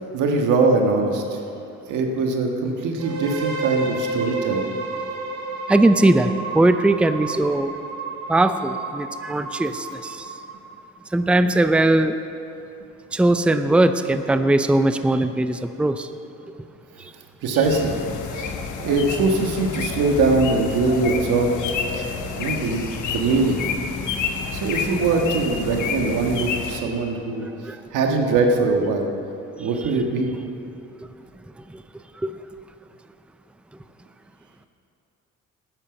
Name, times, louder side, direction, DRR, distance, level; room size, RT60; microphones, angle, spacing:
voice 1, 0.1-1.4 1.9-4.6 17.4-18.0 18.3-21.5 21.9-22.8 23.1-23.6 24.5-27.5 27.9-29.1 29.6-30.3, right 3 dB, 90° right, 2 dB, 1.6 m, -22 dB
sound 1, 3.0-10.8, right 4 dB, 70° right, 2.6 m, -31 dB
voice 2, 5.7-7.7 8.3-10.3 11.1-12.2 13.1-16.1 27.6-27.8 32.2-32.3, right 2 dB, 5° right, 9 dB, 0.5 m, -19 dB
sound 2, 17.6-26.8, left 5 dB, 80° left, 1.3 m, -29 dB
12.0 x 10.0 x 7.1 m, 2.8 s
cardioid pair, 90°, 30 cm